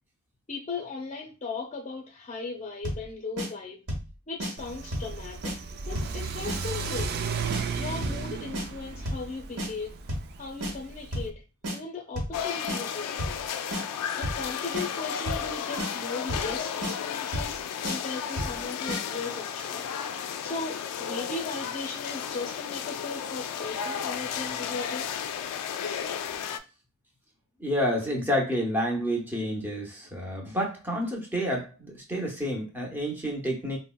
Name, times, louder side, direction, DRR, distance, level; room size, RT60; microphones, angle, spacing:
voice 1, 0.5-3.8 4.3-7.1 7.8-9.9 10.4-11.3 11.7-13.4 14.1-19.9 20.4-25.1, left 4 dB, 30° left, -1 dB, 0.6 m, -37 dB
sound 1, 2.8-3.1 3.4-3.5 3.9-4.1 4.4-4.5 4.9-5.1 5.4-5.6 6.0-6.2 6.5-6.6 7.0-7.2 7.5-7.6 8.0-8.2 8.5-8.7 9.1-9.3 9.6-9.7 10.1-10.3 10.6-10.7 11.1-11.3 11.6-11.8 12.2-12.4 12.7-12.8 13.2-13.4 13.7-13.8 14.2-14.5 14.7-14.9 15.3-15.5 15.8-15.9 16.3-16.5 16.8-16.9 17.3-17.6 17.8-18.0 18.4-18.6 18.9-19.0, equal, 85° right, 1.0 m, -31 dB
Car / Accelerating revving vroom, 4.6-11.3, right 5 dB, 45° right, 0.3 m, -35 dB
sound 2, 12.3-26.6, left 8 dB, 85° left, 0.3 m, -33 dB
voice 2, 27.6-33.8, equal, 10° right, -1 dB, 0.6 m, -29 dB
3.9 x 2.0 x 2.2 m, 0.32 s
head